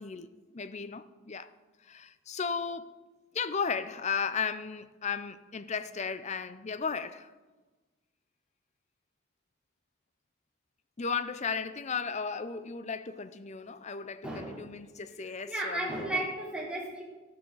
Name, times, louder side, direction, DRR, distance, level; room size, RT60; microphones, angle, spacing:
voice 1, 0.0-1.5 1.8-3.0 3.3-7.3 11.0-16.2, left 5 dB, 35° left, 0.5 m, -35 dB
voice 2, 14.2-14.8 15.5-17.0, right 2 dB, 5° right, 3.5 m, -34 dB
13.0 x 12.5 x 4.0 m
head